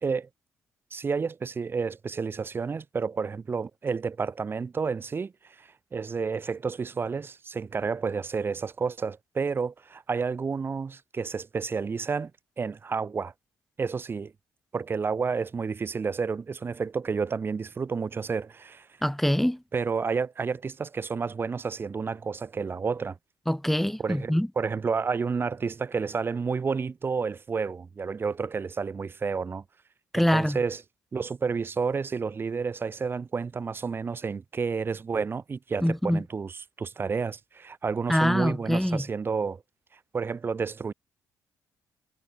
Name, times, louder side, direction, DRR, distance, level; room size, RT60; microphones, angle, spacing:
voice 1, 0.9-12.3 12.6-13.3 13.8-14.3 14.7-18.9 19.7-23.2 24.0-29.6 30.1-30.8 31.1-39.6 40.1-40.9, right 5 dB, 30° right, 3.4 m, -30 dB
voice 2, 19.0-19.6 23.5-24.5 30.1-30.6 35.8-36.2 38.1-39.1, equal, 5° left, 2.2 m, -24 dB
cardioid pair, 110°, 7 cm